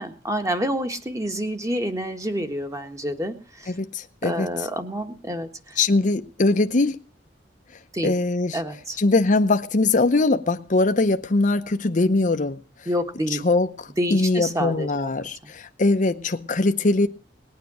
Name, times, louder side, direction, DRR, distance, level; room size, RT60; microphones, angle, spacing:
voice 1, 0.0-3.7 4.2-5.8 7.9-8.1 8.5-9.0 12.8-13.4 14.0-15.1, equal, 20° right, 1.6 m, -28 dB
voice 2, 3.7-4.5 5.8-7.0 8.0-8.6 9.0-12.6 13.4-17.1, left 2 dB, 45° left, 0.8 m, -21 dB
19.5 x 9.4 x 6.2 m
head